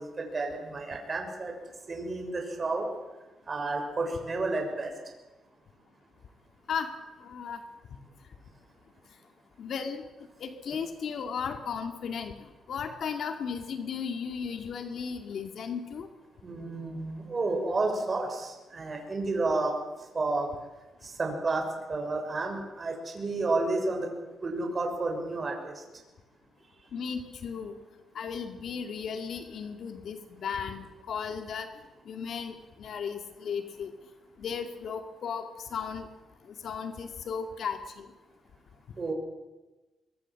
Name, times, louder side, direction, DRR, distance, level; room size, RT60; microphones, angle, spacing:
voice 1, 0.0-1.5 1.9-2.9 3.5-4.9 16.4-19.7 20.1-20.5 21.0-21.6 21.9-24.1 24.4-25.8 39.0-39.1, right 3 dB, 35° right, 3 dB, 6.5 m, -31 dB
voice 2, 7.2-7.6 9.6-10.0 10.4-12.3 12.7-16.1 26.9-27.8 28.1-31.7 32.1-33.9 34.4-36.1 36.6-38.1, left 6 dB, 65° left, 6 dB, 2.2 m, -35 dB
23.5 x 23.0 x 7.6 m, 1.1 s
cardioid pair, 115°, 0 cm